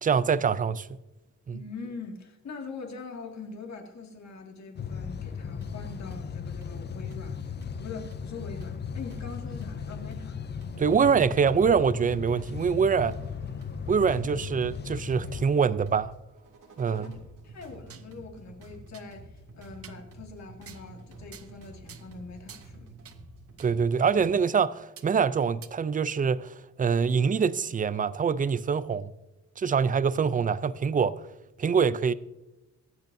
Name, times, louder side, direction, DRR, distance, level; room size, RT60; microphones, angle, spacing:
voice 1, 0.0-0.9 1.5-1.6 10.8-13.1 13.9-16.1 16.8-17.1 23.6-29.1 29.6-31.2 31.6-32.1, right 6 dB, 30° right, 0.4 m, -24 dB
voice 2, 1.5-10.4 16.8-23.0, left 4 dB, 60° left, 2.2 m, -43 dB
sound 1, 4.8-15.4, left 7 dB, 35° left, 0.4 m, -37 dB
sound 2, 5.2-24.2, right 2 dB, 80° right, 2.2 m, -49 dB
sound 3, 17.9-18.1 18.5-18.6 18.9-19.1 19.8-20.0 20.6-20.9 21.3-21.6 21.9-22.1 22.5-22.7 23.0-23.2 23.6-23.7 24.2-24.3 25.0-25.1 25.6-25.7, right 8 dB, 50° right, 0.7 m, -49 dB
24.0 x 8.1 x 2.7 m
wide cardioid pair, 155°, 31 cm